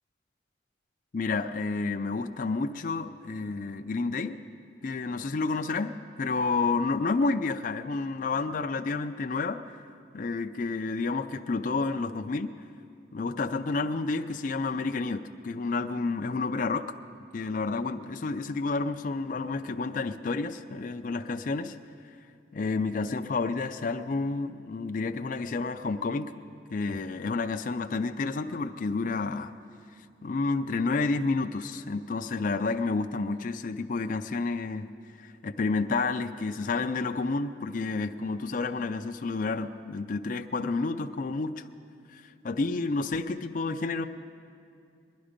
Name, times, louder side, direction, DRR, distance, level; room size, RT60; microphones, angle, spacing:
voice 1, 1.1-4.4 4.8-9.8 10.1-12.5 13.1-17.0 17.3-21.8 22.5-26.3 26.7-29.6 30.2-34.9 35.2-41.6 42.1-44.1, left 3 dB, 45° left, 7 dB, 0.4 m, -30 dB
21.0 x 11.0 x 5.1 m, 2.5 s
head